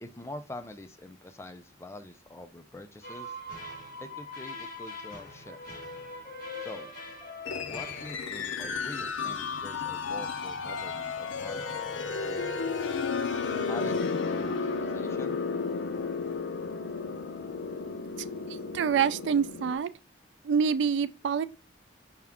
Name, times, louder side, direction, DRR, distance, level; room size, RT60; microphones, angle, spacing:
voice 1, 0.0-3.4 4.0-5.8 6.6-6.9 7.7-13.1 13.7-15.4, left 2 dB, 15° left, 0.4 m, -45 dB
sound 1, 3.0-8.1, left 2 dB, 50° left, 2.2 m, -42 dB
sound 2, 7.4-19.7, left 4 dB, 80° left, 0.5 m, -33 dB
voice 2, 18.7-19.9 20.4-21.4, right 6 dB, 70° right, 0.3 m, -26 dB
5.7 x 2.4 x 3.5 m
head